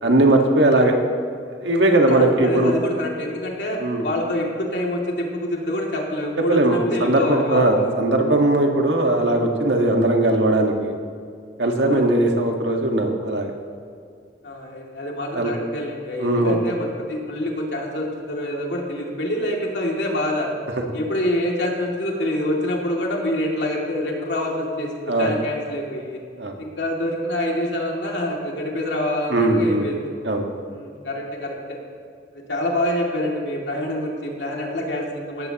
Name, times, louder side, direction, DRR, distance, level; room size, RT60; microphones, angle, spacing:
voice 1, 0.0-0.9 1.6-2.7 3.8-4.0 6.5-10.9 11.6-13.5 15.3-15.5 16.2-16.6 25.1-25.3 26.4-26.5 29.3-29.9 30.2-30.4, right 2 dB, 75° right, 2 dB, 1.6 m, -19 dB
voice 2, 1.9-7.9 11.8-12.1 14.4-20.5 20.9-26.2 26.6-30.0 30.7-31.8 32.3-35.5, left 1 dB, 75° left, -1 dB, 2.5 m, -26 dB
17.5 x 14.5 x 3.0 m, 2.3 s
head